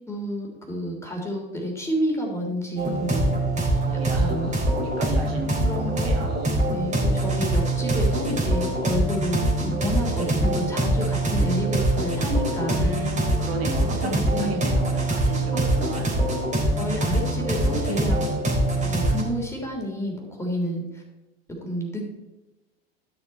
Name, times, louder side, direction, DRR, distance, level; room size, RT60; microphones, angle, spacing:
voice 1, 0.1-3.4 4.1-4.5 5.6-6.1 6.7-12.9 14.0-14.6 15.5-15.9 16.8-18.2 18.8-21.0 21.6-22.1, equal, 10° left, -1 dB, 3.1 m, -30 dB
sound 1, 2.8-19.2, right 1 dB, 25° right, 3.5 m, -24 dB
voice 2, 3.5-6.5 12.7-16.4, right 3 dB, 75° right, 4 dB, 2.0 m, -35 dB
12.5 x 6.5 x 4.4 m, 1.0 s
hypercardioid pair, 95°, 30 cm